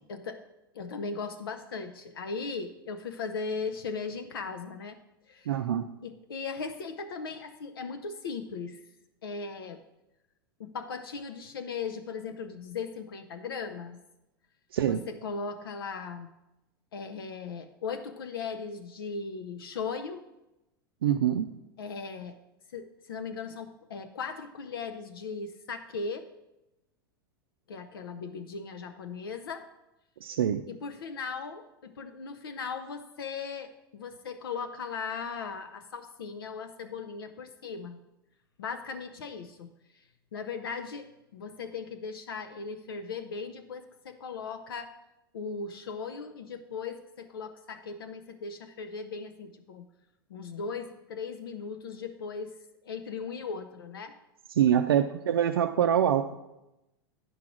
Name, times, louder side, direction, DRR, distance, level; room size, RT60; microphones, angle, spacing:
voice 1, 0.1-0.4 0.7-5.0 5.3-5.5 6.0-8.8 9.2-9.8 10.6-14.0 14.8-16.3 16.9-20.2 21.8-22.4 22.7-26.2 27.7-29.7 30.7-38.0 38.6-39.7 40.3-44.9 45.3-49.9 50.3-52.6 52.8-54.1, left 5 dB, 70° left, 7 dB, 0.6 m, -38 dB
voice 2, 5.5-5.9 14.7-15.0 21.0-21.5 30.2-30.6 54.5-56.3, right 9 dB, 70° right, 5 dB, 0.5 m, -25 dB
10.0 x 4.8 x 5.9 m, 0.94 s
figure-of-eight pair, 90°, 12 cm